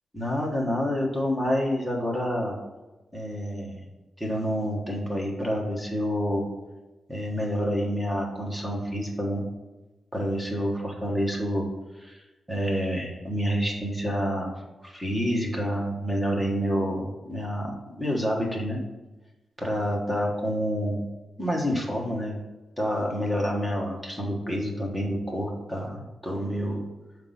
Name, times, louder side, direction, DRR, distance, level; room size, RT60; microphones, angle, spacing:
voice 1, 0.1-2.6 3.1-3.9 4.2-6.5 7.1-9.4 10.1-11.7 11.9-12.2 12.5-14.5 14.8-18.8 19.6-21.0 21.4-22.4 22.8-26.8, equal, 5° right, -2 dB, 1.3 m, -28 dB
5.8 x 4.6 x 5.6 m, 1.1 s
wide cardioid pair, 170°, 0 cm